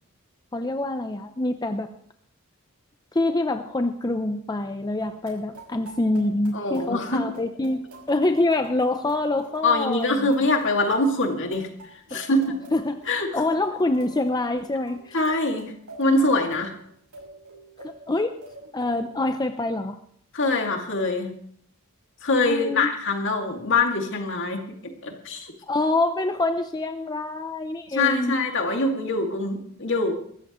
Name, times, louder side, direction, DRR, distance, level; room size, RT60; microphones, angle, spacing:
voice 1, 0.5-1.9 3.1-7.8 8.1-10.3 12.1-12.2 12.7-15.2 17.8-18.4 18.7-20.0 22.4-22.9 25.7-28.3, left 2 dB, 20° left, 7 dB, 0.6 m, -26 dB
sound 1, 5.0-19.3, right 3 dB, 85° right, 6.3 m, -47 dB
voice 2, 6.5-7.2 9.6-12.5 13.1-13.3 15.1-15.7 16.0-16.8 20.3-21.3 22.2-25.5 27.9-30.1, left 2 dB, 60° left, 3 dB, 2.2 m, -24 dB
22.0 x 14.0 x 3.1 m, 0.66 s
head